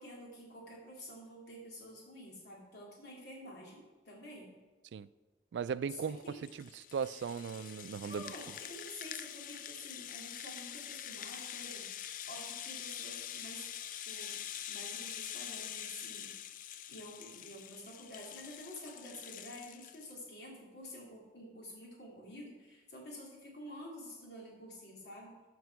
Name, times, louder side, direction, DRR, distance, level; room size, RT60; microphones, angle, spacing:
voice 1, 0.0-4.5 5.9-6.4 8.0-13.7 13.9-14.4 14.7-16.3 16.9-25.4, left 1 dB, 70° left, 2.9 m, -49 dB
voice 2, 5.5-8.3, right 6 dB, 85° right, 0.3 m, -38 dB
Rattle (instrument), 5.9-20.1, left 10 dB, 45° left, 0.4 m, -45 dB
14.0 x 5.2 x 4.7 m
head